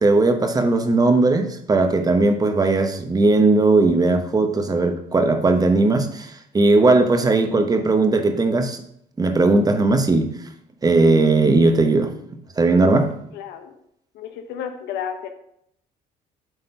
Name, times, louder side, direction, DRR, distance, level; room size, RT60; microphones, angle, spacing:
voice 1, 0.0-8.8 9.2-10.3 10.8-12.1 12.6-13.1, right 3 dB, 20° right, 1.0 m, -18 dB
voice 2, 13.3-13.7 14.1-15.3, left 8 dB, 85° left, 0.9 m, -32 dB
8.0 x 4.1 x 5.5 m
cardioid pair, 110°, 17 cm